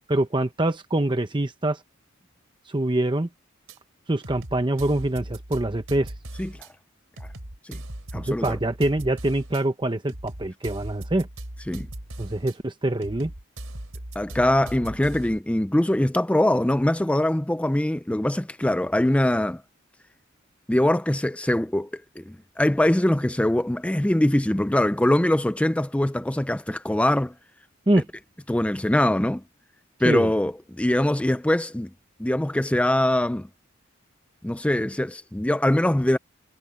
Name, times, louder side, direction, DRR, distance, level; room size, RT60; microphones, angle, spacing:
voice 1, 0.1-1.8 2.7-3.3 4.1-6.1 8.1-11.3 12.2-13.3 27.9-28.1 30.0-30.3, right 1 dB, 20° right, 0.8 m, -24 dB
sound 1, 3.7-3.8 4.2-6.7 7.2-9.6 10.1-12.5 13.0-15.4, right 1 dB, 80° right, 3.2 m, -38 dB
voice 2, 8.1-8.6 11.7-11.9 14.2-19.6 20.7-27.3 28.5-29.4 30.0-31.9 32.2-33.5 34.4-36.2, left 1 dB, 5° left, 0.4 m, -23 dB
head